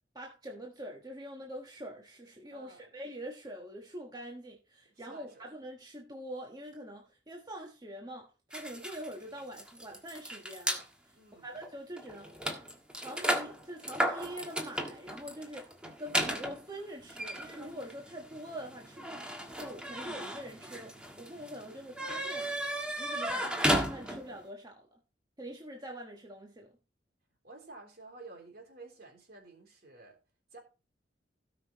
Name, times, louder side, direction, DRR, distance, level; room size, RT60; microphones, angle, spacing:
voice 1, 0.1-15.7 16.0-19.2 19.5-22.5 23.0-25.0 25.4-26.7, equal, 20° right, 1.4 m, -45 dB
voice 2, 2.5-2.9 4.9-5.5 11.1-11.6 23.2-23.6 27.4-30.2 30.5-30.6, right 3 dB, 55° right, 3.6 m, -52 dB
sound 1, 8.5-10.8 11.6-11.7 12.0-24.4, right 1 dB, 5° right, 1.4 m, -35 dB
17.0 x 5.9 x 3.0 m
head